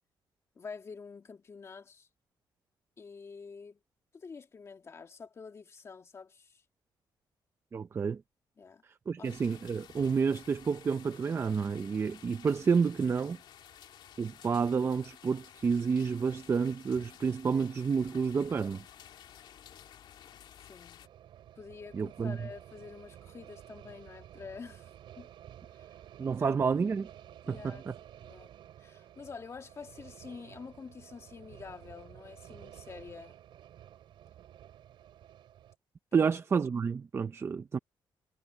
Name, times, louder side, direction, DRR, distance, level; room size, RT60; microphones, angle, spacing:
voice 1, 0.6-2.1 3.0-3.8 4.1-6.6 8.6-8.8 9.2-9.4 20.6-21.1 21.6-25.3 25.7-26.0 26.4-26.6 27.4-27.9 28.1-28.5 28.8-33.4 36.1-36.3, left 5 dB, 35° left, 1.9 m, -48 dB
voice 2, 7.7-8.2 9.1-13.4 14.2-18.8 21.9-22.5 26.2-27.1 27.5-27.9 36.1-37.8, right 5 dB, 30° right, 0.7 m, -29 dB
sound 1, 9.2-21.1, left 9 dB, 70° left, 2.6 m, -53 dB
sound 2, 21.0-35.7, right 11 dB, 85° right, 3.2 m, -52 dB
cardioid pair, 140°, 8 cm